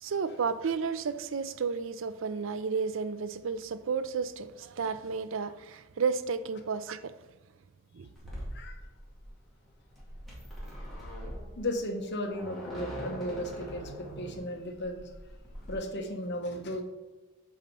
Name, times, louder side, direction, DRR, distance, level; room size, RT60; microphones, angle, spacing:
voice 1, 0.0-7.1 7.9-8.1 8.3-8.4, right 5 dB, 65° right, 0.4 m, -32 dB
sound 1, 8.1-15.7, equal, ahead, 2.1 m, -42 dB
voice 2, 11.6-15.1 15.7-16.8, left 1 dB, 55° left, 1.1 m, -35 dB
7.4 x 4.3 x 5.4 m
head